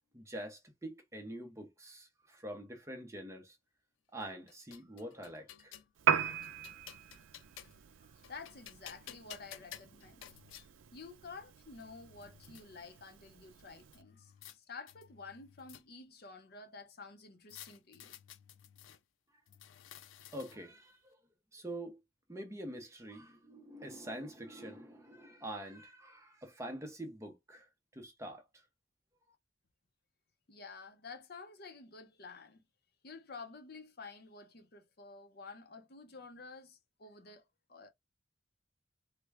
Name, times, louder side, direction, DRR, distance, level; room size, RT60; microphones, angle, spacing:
voice 1, 0.1-3.6 4.1-5.8 20.3-21.2 21.5-22.0 22.3-28.6, right 1 dB, 15° right, 0.6 m, -45 dB
sound 1, 4.2-5.9 6.4-7.9 8.2-10.7 11.4-11.5 11.8-12.6 13.9-14.6 14.9-16.1 17.5-19.0 19.5-20.8, left 11 dB, 85° left, 0.4 m, -54 dB
Piano, 6.0-14.0, right 8 dB, 85° right, 0.4 m, -39 dB
voice 2, 8.0-10.3 10.9-18.2 30.5-32.6 33.0-37.4 37.7-37.9, left 4 dB, 50° left, 0.7 m, -51 dB
3.3 x 2.1 x 3.3 m
head